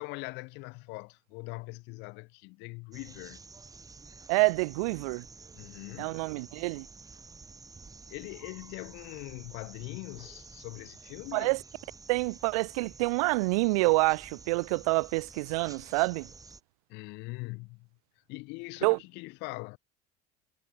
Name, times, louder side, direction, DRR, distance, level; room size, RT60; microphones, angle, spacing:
voice 1, 0.0-3.4 5.5-6.3 8.1-11.6 16.9-17.9 18.3-19.8, left 26 dB, 70° left, 4.6 m, -42 dB
sound 1, 2.9-16.6, right 4 dB, 20° right, 4.1 m, -51 dB
voice 2, 4.3-5.2 6.0-6.9 11.3-11.6 12.1-16.3 18.8-19.0, right 25 dB, 80° right, 0.5 m, -27 dB
supercardioid pair, 95°, 18 cm